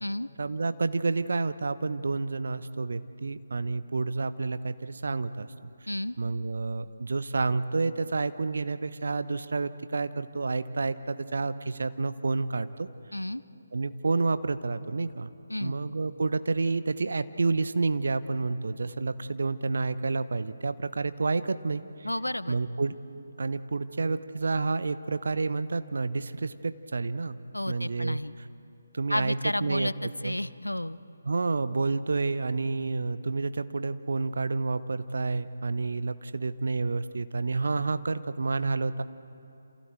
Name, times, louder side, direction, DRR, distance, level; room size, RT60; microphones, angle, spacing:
voice 1, 0.4-5.7 6.2-12.9 13.7-15.3 15.6-22.1 22.5-22.9 23.4-27.4 27.7-28.2 28.9-29.9 30.2-30.4 31.2-39.0, right 3 dB, 55° right, 12 dB, 0.9 m, -29 dB
voice 2, 13.1-13.4 15.5-15.7 22.0-22.6 27.5-28.3 29.1-31.0, left 1 dB, 85° left, 16 dB, 0.7 m, -32 dB
28.5 x 28.0 x 4.6 m, 2.8 s
figure-of-eight pair, 150°, 0 cm